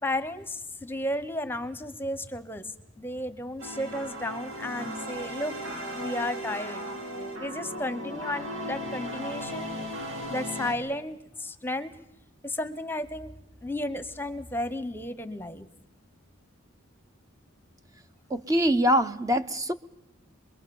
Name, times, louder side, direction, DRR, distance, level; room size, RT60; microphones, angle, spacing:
voice 1, 0.0-5.5 5.9-6.8 7.4-9.7 10.3-11.9 12.4-13.3 13.6-15.7, left 1 dB, 10° left, 12 dB, 1.1 m, -33 dB
sound 1, 3.6-10.7, equal, 80° right, 5.4 m, -36 dB
voice 2, 18.3-19.7, equal, 15° right, 10 dB, 0.9 m, -24 dB
24.5 x 23.0 x 7.2 m, 0.80 s
head